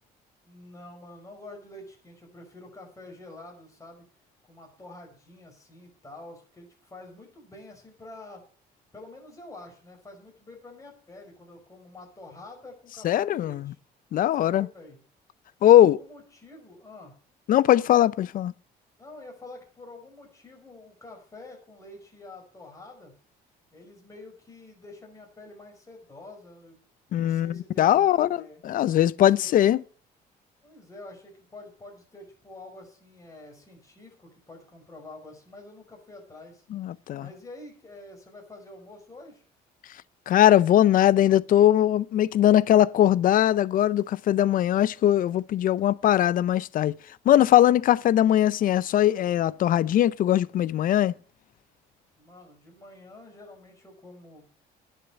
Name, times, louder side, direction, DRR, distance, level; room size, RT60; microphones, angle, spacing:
voice 1, 0.4-4.0 4.4-8.4 8.9-13.8 14.3-15.0 15.7-17.2 19.0-23.1 23.7-26.8 27.1-28.6 29.4-29.8 30.6-36.6 37.2-39.4 52.2-54.7, left 2 dB, 20° left, 5.2 m, -47 dB
voice 2, 13.0-13.7 14.1-14.7 15.6-16.0 17.5-18.5 27.1-29.8 36.7-37.3 40.3-47.0 47.3-51.1, left 12 dB, 55° left, 0.5 m, -20 dB
10.5 x 6.8 x 8.1 m
cardioid pair, 110°, 17 cm